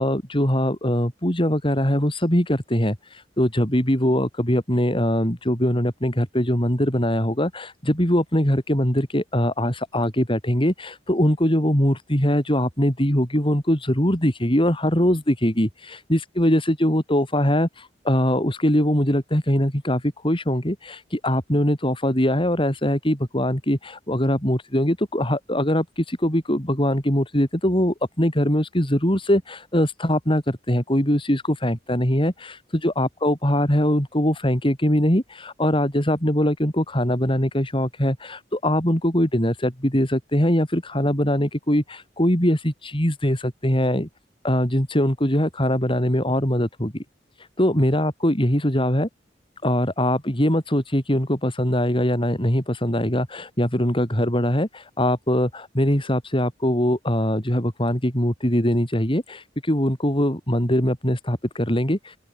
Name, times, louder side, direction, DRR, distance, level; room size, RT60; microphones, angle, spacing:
voice 1, 0.0-44.1 44.4-47.0 47.6-49.1 49.6-62.2, equal, 30° left, 6.9 m, -22 dB
open air
head